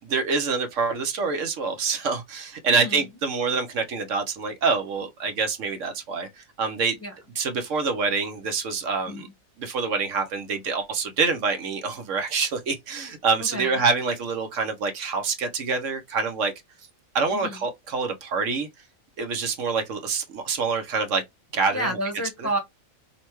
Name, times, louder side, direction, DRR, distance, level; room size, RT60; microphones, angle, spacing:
voice 1, 0.1-7.0 7.4-9.3 9.6-16.5 17.1-18.7 19.2-21.2 21.5-21.9 22.4-22.5, right 4 dB, 65° right, 1.0 m, -26 dB
voice 2, 2.6-3.0 7.0-7.1 9.1-9.3 13.5-13.7 17.3-17.6 21.7-22.6, right 1 dB, 10° left, 0.9 m, -30 dB
5.4 x 2.2 x 3.0 m
omnidirectional pair, 1.5 m